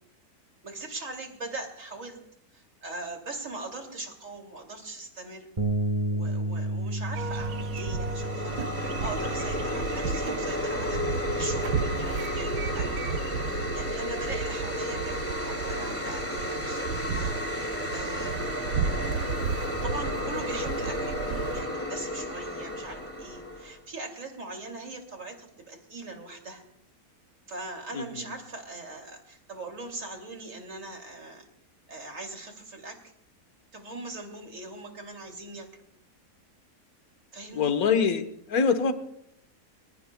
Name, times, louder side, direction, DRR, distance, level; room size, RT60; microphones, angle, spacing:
voice 1, 0.6-2.2 2.5-5.5 6.1-17.3 17.6-18.5 19.8-26.6 27.5-31.5 31.9-33.1 33.7-35.8 37.3-37.7, right 2 dB, 50° right, 3 dB, 3.2 m, -41 dB
Bass guitar, 5.6-11.8, right 1 dB, 25° right, 0.9 m, -33 dB
sound 1, 7.1-21.6, right 5 dB, 80° right, 1.6 m, -34 dB
sound 2, 7.3-23.8, left 1 dB, 10° left, 2.0 m, -33 dB
voice 2, 27.9-28.3 37.5-38.9, left 5 dB, 65° left, 8 dB, 1.7 m, -25 dB
22.5 x 22.0 x 2.3 m, 0.74 s
omnidirectional pair, 1.7 m